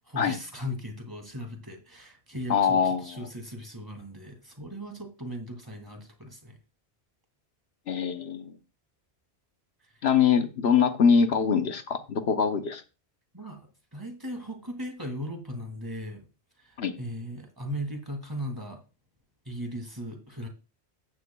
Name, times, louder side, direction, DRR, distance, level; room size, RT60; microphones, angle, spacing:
voice 1, 0.1-6.6 13.3-16.3 16.6-18.8 19.5-20.5, equal, 20° right, 2.3 m, -38 dB
voice 2, 2.5-3.2 7.9-8.5 10.0-12.8 16.8-16.9, left 6 dB, 70° left, 1.1 m, -23 dB
14.0 x 9.5 x 2.3 m
omnidirectional pair, 1.1 m